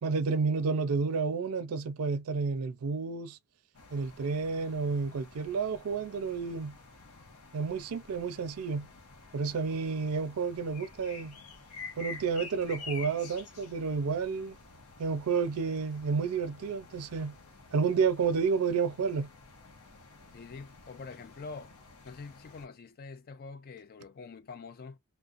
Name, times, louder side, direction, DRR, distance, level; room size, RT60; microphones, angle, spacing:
voice 1, 0.0-3.4 3.9-6.8 7.5-8.9 9.3-11.4 12.0-14.5 15.0-17.3 17.7-19.3, right 5 dB, 75° right, 0.4 m, -30 dB
sound 1, 3.7-22.7, left 4 dB, 75° left, 0.7 m, -50 dB
voice 2, 20.3-21.7 22.0-25.0, left 4 dB, 45° left, 0.4 m, -45 dB
2.4 x 2.0 x 2.5 m
head